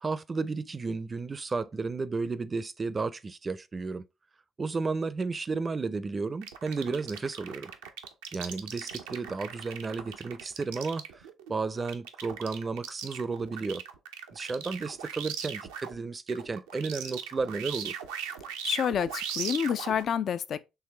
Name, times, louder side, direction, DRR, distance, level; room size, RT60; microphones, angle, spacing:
voice 1, 0.0-4.0 4.6-7.7 8.3-13.8 14.3-18.0, right 4 dB, 35° right, 0.5 m, -33 dB
sound 1, 6.4-16.0 16.3-20.0, right 8 dB, 85° right, 0.5 m, -39 dB
voice 2, 18.6-20.6, left 8 dB, 55° left, 0.3 m, -28 dB
4.7 x 3.2 x 3.2 m
hypercardioid pair, 50°, 0 cm